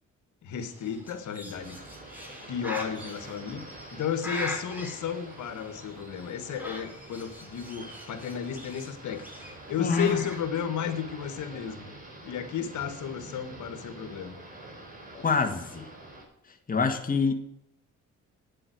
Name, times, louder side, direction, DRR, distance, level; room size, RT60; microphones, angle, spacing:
voice 1, 0.4-1.8 2.5-3.6 3.9-9.2 9.7-11.9 12.2-14.4, left 8 dB, 75° left, 9 dB, 1.8 m, -33 dB
Bird, 0.5-10.4, left 1 dB, 5° right, 3.8 m, -42 dB
sound 1, 1.5-16.2, right 2 dB, 25° right, 4.5 m, -47 dB
voice 2, 9.8-10.2 15.1-15.9 16.5-17.3, left 4 dB, 30° left, 4 dB, 1.9 m, -26 dB
9.2 x 7.7 x 7.9 m, 0.80 s
cardioid pair, 90°, 30 cm